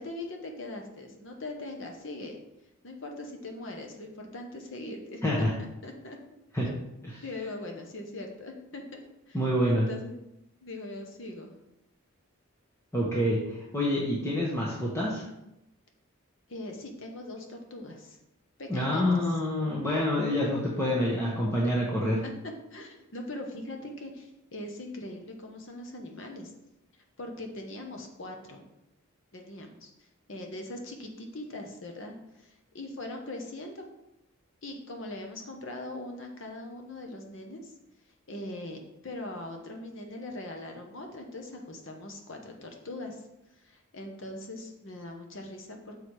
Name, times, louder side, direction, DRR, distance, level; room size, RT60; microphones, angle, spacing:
voice 1, 0.0-2.4 2.8-5.5 5.8-6.2 7.2-9.0 9.3-10.2 10.6-11.5 16.5-18.2 18.6-19.4 22.2-26.5 27.2-28.6 29.3-33.9 34.6-37.7 38.3-43.2 43.6-46.0, left 2 dB, 60° left, 3 dB, 1.1 m, -41 dB
voice 2, 9.3-9.9 12.9-15.2 18.7-22.2, left 1 dB, 10° left, -6 dB, 1.1 m, -27 dB
6.6 x 4.5 x 4.8 m, 0.87 s
head